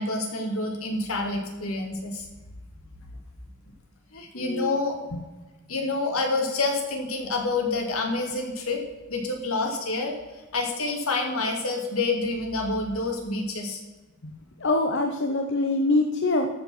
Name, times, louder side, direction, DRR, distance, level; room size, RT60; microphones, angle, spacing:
voice 1, 0.0-2.3 4.1-5.0 5.7-8.8 9.1-10.1 10.5-13.8, left 3 dB, 70° left, 2 dB, 2.3 m, -28 dB
voice 2, 4.1-4.7 5.1-5.2 14.6-16.5, left 2 dB, 55° left, 4 dB, 0.8 m, -24 dB
14.0 x 5.4 x 6.0 m, 1.2 s
head